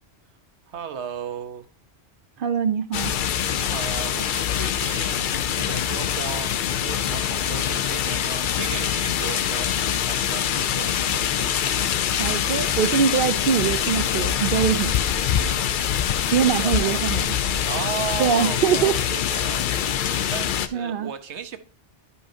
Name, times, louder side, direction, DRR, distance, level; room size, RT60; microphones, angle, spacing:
voice 1, 0.7-1.7 3.3-11.8 15.4-15.7 16.6-17.0 17.6-21.6, right 7 dB, 80° right, 1.2 m, -35 dB
voice 2, 2.4-3.1 12.2-14.9 16.3-17.2 18.2-19.0 20.7-21.1, right 8 dB, 60° right, 0.6 m, -23 dB
sound 1, 2.9-20.7, left 9 dB, 60° left, 0.6 m, -24 dB
11.0 x 5.6 x 2.6 m
omnidirectional pair, 1.1 m